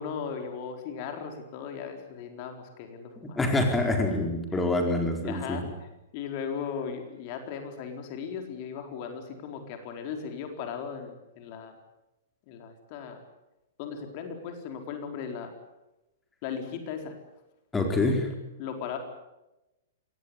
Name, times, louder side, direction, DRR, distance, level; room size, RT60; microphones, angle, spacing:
voice 1, 0.0-3.4 5.2-5.6 6.1-11.7 12.5-13.2 13.8-15.5 16.4-17.1 18.6-19.0, left 7 dB, 40° left, 5 dB, 4.4 m, -37 dB
voice 2, 3.4-5.6 17.7-18.3, left 2 dB, 10° left, 4 dB, 4.4 m, -26 dB
26.0 x 19.0 x 9.9 m, 0.97 s
figure-of-eight pair, 105°, 0 cm